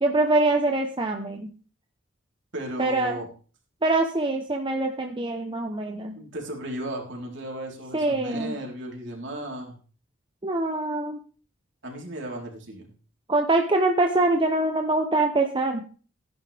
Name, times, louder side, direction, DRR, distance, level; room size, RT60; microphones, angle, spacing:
voice 1, 0.0-1.5 2.8-3.2 3.8-6.2 7.9-8.5 10.4-11.2 13.3-15.8, right 2 dB, 25° right, 3 dB, 0.9 m, -24 dB
voice 2, 2.5-3.3 6.2-9.7 11.8-12.9, right 1 dB, 60° right, 0 dB, 4.0 m, -35 dB
15.5 x 10.5 x 3.5 m, 0.39 s
head